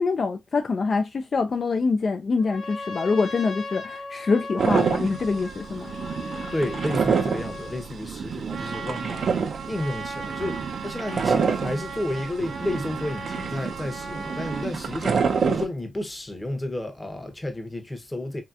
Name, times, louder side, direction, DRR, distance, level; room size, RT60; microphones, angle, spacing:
voice 1, 0.0-5.9, left 4 dB, 50° left, 0.3 m, -25 dB
Trumpet, 2.4-7.9, left 3 dB, 75° left, 1.1 m, -38 dB
sound 1, 4.6-15.7, right 6 dB, 65° right, 0.4 m, -28 dB
voice 2, 6.5-9.3 9.7-18.4, left 1 dB, 15° left, 0.8 m, -31 dB
Trumpet 2, 8.5-14.7, right 4 dB, 85° right, 1.0 m, -37 dB
3.2 x 2.7 x 2.4 m
cardioid pair, 100°, 0 cm